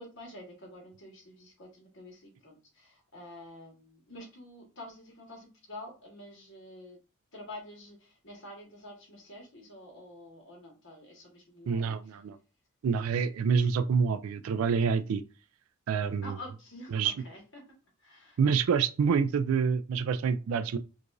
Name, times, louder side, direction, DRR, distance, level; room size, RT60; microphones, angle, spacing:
voice 1, 0.0-7.0 7.3-12.2 16.2-17.6 18.0-18.4, left 1 dB, 60° left, 1.5 m, -48 dB
voice 2, 11.7-12.4 12.8-15.2 15.9-16.3 16.9-17.1 18.4-20.8, right 6 dB, 80° right, 0.3 m, -27 dB
4.6 x 2.5 x 2.5 m
head